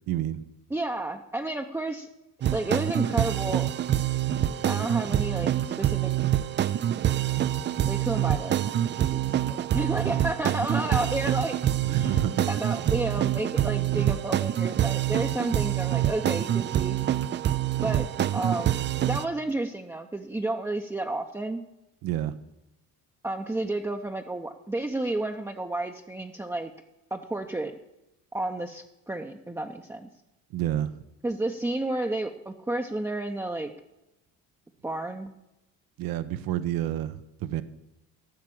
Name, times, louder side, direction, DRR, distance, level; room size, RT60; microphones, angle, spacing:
voice 1, 0.1-0.4 9.9-10.0 11.8-12.8 22.0-22.4 30.5-30.9 36.0-37.6, right 12 dB, 75° right, 13 dB, 0.9 m, -29 dB
voice 2, 0.7-2.1 2.5-3.7 4.7-6.1 7.9-8.6 9.1-9.2 9.4-11.6 11.9-17.0 17.7-18.1 18.3-18.8 19.0-21.6 23.2-26.7 27.1-27.7 28.3-30.1 31.2-33.7 34.8-35.4, right 2 dB, 5° right, 2 dB, 0.7 m, -31 dB
sound 1, 2.4-19.2, right 11 dB, 30° right, 0.4 m, -26 dB
14.5 x 5.9 x 8.7 m, 0.93 s
cardioid pair, 110°, 36 cm